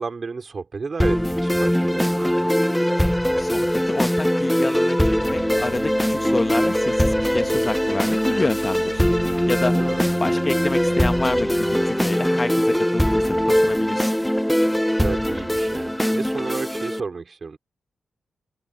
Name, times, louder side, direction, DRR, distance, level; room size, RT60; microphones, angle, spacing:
voice 1, 0.0-2.5 9.8-10.1 15.0-17.6, right 4 dB, 50° right, 3.6 m, -32 dB
sound 1, 1.0-17.0, equal, 5° left, 0.4 m, -21 dB
voice 2, 3.4-9.1 9.5-9.7 10.2-14.1, left 3 dB, 35° left, 1.6 m, -28 dB
sound 2, 5.3-11.9, right 10 dB, 90° right, 5.1 m, -42 dB
open air
cardioid pair, 50°, 0 cm